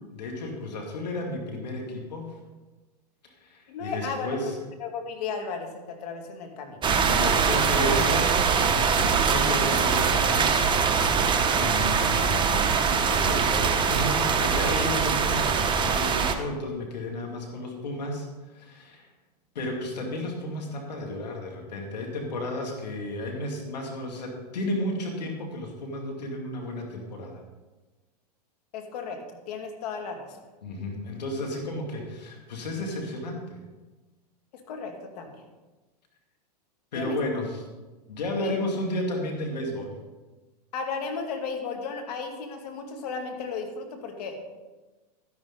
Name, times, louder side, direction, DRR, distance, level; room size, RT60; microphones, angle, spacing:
voice 1, 0.1-2.3 3.2-4.7 7.0-11.2 11.5-19.0 19.5-27.4 30.6-33.6 36.9-37.6 38.1-40.0, left 1 dB, 85° left, 1 dB, 2.5 m, -33 dB
voice 2, 3.7-4.3 4.8-6.8 28.7-30.4 34.7-35.4 36.9-37.2 38.4-38.5 40.7-44.4, left 5 dB, 70° left, 3 dB, 2.3 m, -35 dB
sound 1, 6.8-16.3, right 6 dB, 25° right, 1.2 m, -23 dB
12.5 x 10.5 x 4.0 m, 1.2 s
hypercardioid pair, 110°, 21 cm